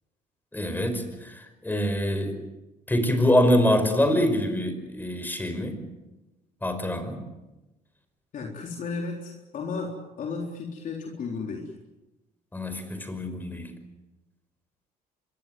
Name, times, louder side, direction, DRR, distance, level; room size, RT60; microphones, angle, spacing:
voice 1, 0.5-2.4 2.9-5.8 6.6-7.2 12.5-13.7, left 1 dB, 10° left, 8 dB, 5.3 m, -25 dB
voice 2, 8.3-11.7, left 4 dB, 50° left, 0 dB, 4.0 m, -34 dB
25.5 x 23.5 x 7.9 m, 1.0 s
cardioid pair, 110°, 17 cm